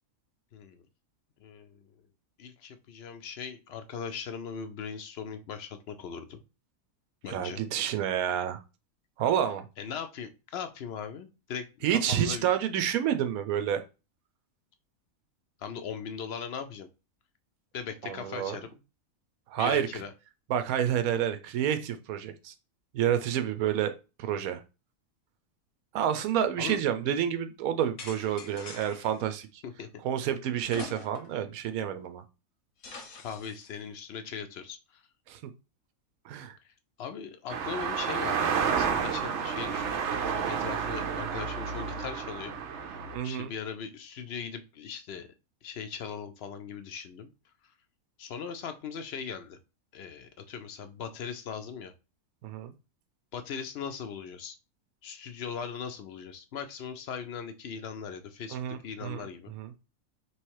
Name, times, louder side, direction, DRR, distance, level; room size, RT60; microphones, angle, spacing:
voice 1, 0.5-0.8 1.4-2.0 2.4-6.4 7.2-7.6 9.8-12.5 15.6-16.9 17.7-18.8 19.6-20.1 26.6-26.8 29.6-29.9 33.2-35.0 36.6-42.5 42.8-45.3 45.6-47.3 47.6-47.7 48.2-49.6 49.9-51.9 53.3-54.6 55.0-59.5, left 6 dB, 60° left, 8 dB, 0.7 m, -39 dB
voice 2, 7.3-8.6 9.2-9.7 11.8-13.8 18.0-18.6 19.5-19.9 20.5-22.5 22.9-23.9 24.2-24.6 25.9-29.6 30.0-32.2 35.3-35.4 36.2-36.6 43.1-43.5 52.4-52.7 58.5-59.2 59.6-59.7, right 9 dB, 90° right, 9 dB, 1.1 m, -29 dB
sound 1, 28.0-29.2 30.7-31.4 31.8-31.9 32.8-33.7, left 3 dB, 80° left, 1.4 m, -44 dB
sound 2, 37.5-43.2, right 6 dB, 60° right, 0.8 m, -30 dB
3.2 x 3.1 x 4.6 m, 0.29 s
omnidirectional pair, 1.5 m